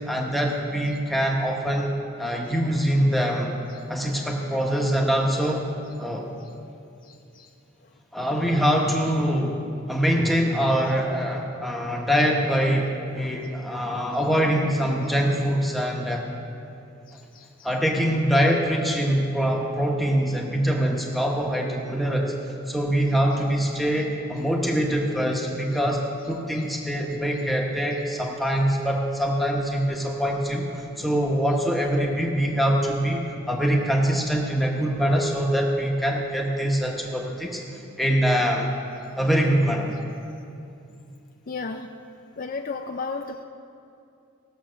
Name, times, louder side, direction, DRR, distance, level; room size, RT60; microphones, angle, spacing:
voice 1, 0.1-1.9 2.2-3.5 3.9-5.7 6.0-6.3 8.1-9.6 9.9-12.9 13.1-16.2 17.6-22.3 22.7-37.6 38.0-38.7 39.2-39.9, equal, ahead, -1 dB, 1.0 m, -24 dB
voice 2, 7.0-7.5 13.3-13.4 17.1-17.7 26.5-26.6 41.5-41.9 42.4-43.4, left 4 dB, 40° left, 4 dB, 0.4 m, -35 dB
18.0 x 7.1 x 6.3 m, 2.6 s
head